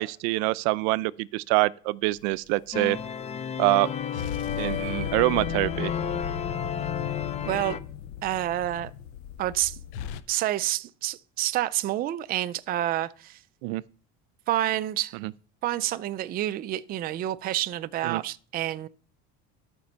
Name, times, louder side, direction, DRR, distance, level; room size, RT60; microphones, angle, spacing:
voice 1, 0.0-3.0 3.6-3.9 4.6-5.9 13.6-13.8 15.2-15.3 18.0-18.2, right 21 dB, 80° right, 0.6 m, -25 dB
sound 1, 2.1-2.8 4.1-10.2, left 9 dB, 85° left, 1.0 m, -36 dB
sound 2, 2.7-7.8, left 7 dB, 20° left, 0.5 m, -32 dB
voice 2, 7.4-7.8 8.2-8.9 9.4-9.8 10.3-13.4 14.5-15.2 15.6-18.9, right 14 dB, 30° right, 0.4 m, -28 dB
12.0 x 5.3 x 6.7 m
cardioid pair, 165°, 33 cm